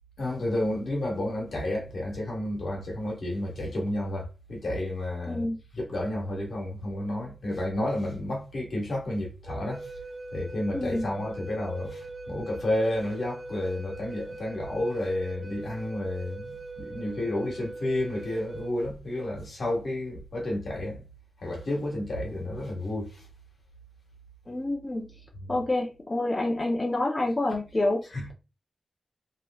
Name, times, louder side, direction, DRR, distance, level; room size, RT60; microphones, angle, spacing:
voice 1, 0.2-5.5 5.8-9.9 10.3-21.0 21.4-23.2 25.4-25.5 28.1-28.2, left 1 dB, 65° left, 1.4 m, -31 dB
voice 2, 5.3-5.6 10.7-11.1 24.5-25.1 25.5-28.3, left 2 dB, 30° left, 0.7 m, -28 dB
Wind instrument woodwind instrument, 9.5-18.8, right 2 dB, 35° right, 1.5 m, -41 dB
3.1 x 3.0 x 2.3 m
wide cardioid pair, 90°, 0 cm